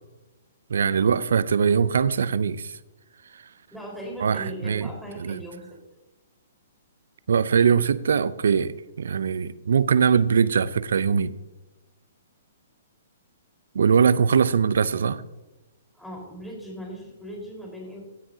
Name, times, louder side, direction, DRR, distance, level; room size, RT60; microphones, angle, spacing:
voice 1, 0.7-2.7 4.2-4.9 5.2-5.4 7.3-11.3 13.7-15.2, right 6 dB, 65° right, 0.6 m, -21 dB
voice 2, 3.7-5.7 15.9-18.0, right 1 dB, 5° left, 4.3 m, -38 dB
16.5 x 9.6 x 2.8 m
figure-of-eight pair, 120°, 0 cm